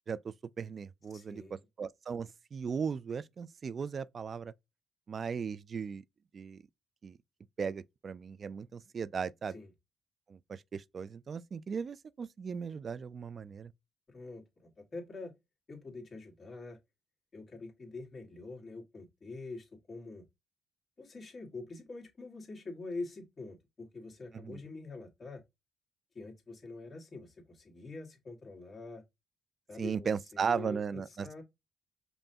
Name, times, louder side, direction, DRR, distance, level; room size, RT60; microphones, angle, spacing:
voice 1, 0.1-4.5 5.1-6.0 6.3-6.6 7.0-7.2 7.6-9.6 10.3-13.7 24.3-24.6 29.8-31.4, right 6 dB, 45° right, 0.3 m, -37 dB
voice 2, 1.1-1.6 9.5-9.7 14.1-15.3 15.7-16.8 17.3-20.3 21.0-25.4 26.1-29.0 29.7-31.4, left 3 dB, 40° left, 1.6 m, -45 dB
5.3 x 2.2 x 2.7 m
cardioid pair, 90°, 0 cm